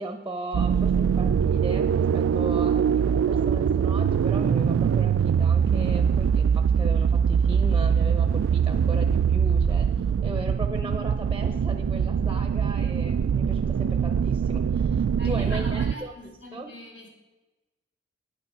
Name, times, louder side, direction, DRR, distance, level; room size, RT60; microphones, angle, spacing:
voice 1, 0.0-9.9 10.2-16.7, right 1 dB, 10° right, 6 dB, 0.8 m, -37 dB
sound 1, 0.5-15.9, right 7 dB, 90° right, 0.3 m, -23 dB
voice 2, 15.2-17.1, equal, 65° left, 0 dB, 2.4 m, -41 dB
9.8 x 8.7 x 5.6 m, 1.1 s
head